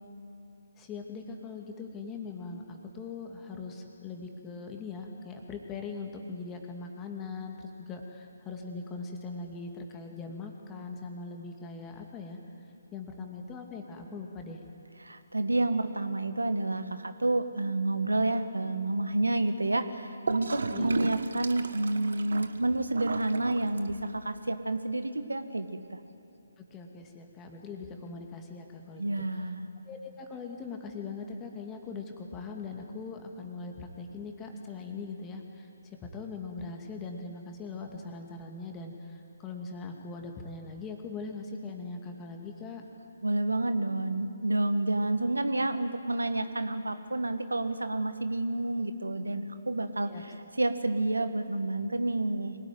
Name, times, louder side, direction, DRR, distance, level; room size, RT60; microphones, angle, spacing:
voice 1, 0.8-12.4 12.9-14.6 20.7-20.9 26.6-29.2 29.9-42.8 50.1-50.2, left 4 dB, 15° left, 2 dB, 2.5 m, -41 dB
voice 2, 15.0-26.0 29.0-29.6 43.2-52.6, right 2 dB, 75° right, 10 dB, 1.5 m, -29 dB
Gurgling / Toilet flush, 20.3-24.2, right 4 dB, 60° right, 1.2 m, -35 dB
25.0 x 18.5 x 9.4 m, 2.7 s
figure-of-eight pair, 140°, 0 cm